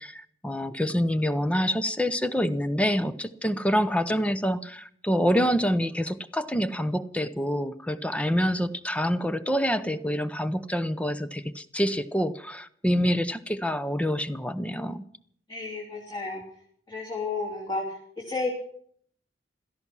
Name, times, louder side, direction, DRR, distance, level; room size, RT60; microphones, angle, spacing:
voice 1, 0.0-15.0, equal, 5° left, 12 dB, 0.6 m, -26 dB
voice 2, 15.5-16.4 16.9-17.8 18.2-18.5, left 3 dB, 25° left, -3 dB, 3.0 m, -31 dB
17.0 x 13.5 x 6.1 m, 0.63 s
head